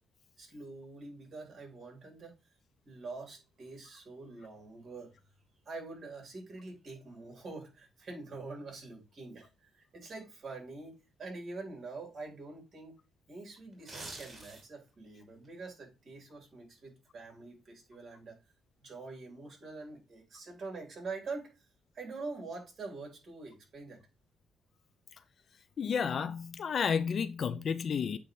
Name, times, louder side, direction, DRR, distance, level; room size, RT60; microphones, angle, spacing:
voice 1, 0.4-2.4 2.8-5.1 5.6-13.0 13.3-18.4 18.8-21.7 21.9-24.0, right 3 dB, 50° right, 3.2 m, -45 dB
sound 1, 13.7-14.9 15.3-15.5, right 2 dB, 25° right, 3.2 m, -45 dB
voice 2, 25.8-28.2, left 6 dB, 50° left, 0.6 m, -31 dB
8.4 x 2.9 x 3.8 m
cardioid pair, 90°, 0 cm